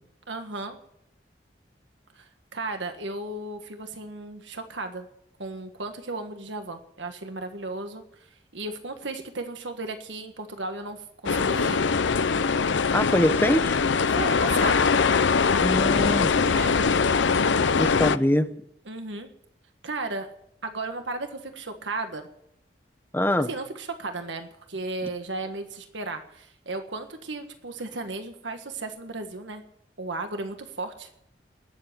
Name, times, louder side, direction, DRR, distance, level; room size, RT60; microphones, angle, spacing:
voice 1, 0.3-0.8 2.1-5.1 5.4-8.3 8.5-11.8 14.2-14.9 16.5-16.8 18.9-19.3 19.8-20.3 20.6-22.3 23.5-29.6 30.0-31.1, right 2 dB, 80° right, 1.6 m, -35 dB
sound 1, 11.3-18.2, left 5 dB, 80° left, 0.6 m, -22 dB
voice 2, 12.9-13.7 15.6-16.3 17.8-18.5 23.1-23.5, left 1 dB, 10° left, 0.9 m, -23 dB
19.5 x 7.6 x 9.2 m
head